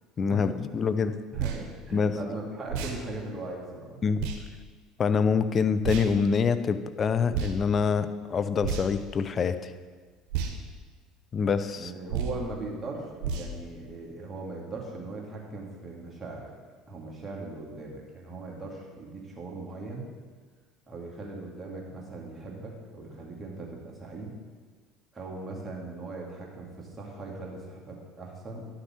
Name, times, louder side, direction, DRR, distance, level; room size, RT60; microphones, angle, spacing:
voice 1, 0.2-1.1 1.9-2.1 4.0-4.2 5.0-9.7 11.3-11.9, left 6 dB, 40° left, 11 dB, 0.6 m, -25 dB
voice 2, 1.3-4.0 11.8-16.5 16.9-20.1 20.9-24.4 25.1-28.7, right 3 dB, 20° right, -3 dB, 2.5 m, -39 dB
sound 1, 1.3-1.6 2.7-3.0 4.2-4.4 5.8-6.1 7.3-7.5 8.6-9.0 10.3-10.5 12.1-12.4 13.2-13.5, right 7 dB, 65° right, 1.2 m, -31 dB
11.0 x 6.5 x 4.5 m, 1.5 s
hypercardioid pair, 75°, 0 cm